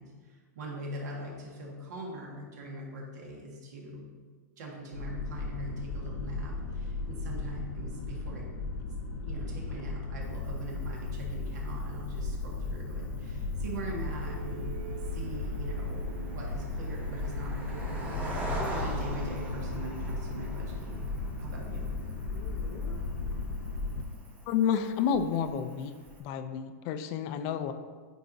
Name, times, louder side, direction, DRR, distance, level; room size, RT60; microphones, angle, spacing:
voice 1, 0.0-4.1 4.6-8.5 9.2-14.8 15.1-21.1 21.4-22.0, right 1 dB, 75° right, -2 dB, 1.8 m, -42 dB
sound 1, 4.9-24.0, left 3 dB, 65° left, 0.9 m, -35 dB
Cricket, 10.2-26.2, right 1 dB, 15° right, 1.1 m, -45 dB
sound 2, 14.2-21.4, right 5 dB, 55° right, 0.8 m, -46 dB
voice 2, 24.5-25.9 26.2-27.7, left 7 dB, 40° left, 10 dB, 0.4 m, -30 dB
9.1 x 4.7 x 2.7 m, 1.5 s
hypercardioid pair, 145°, 9 cm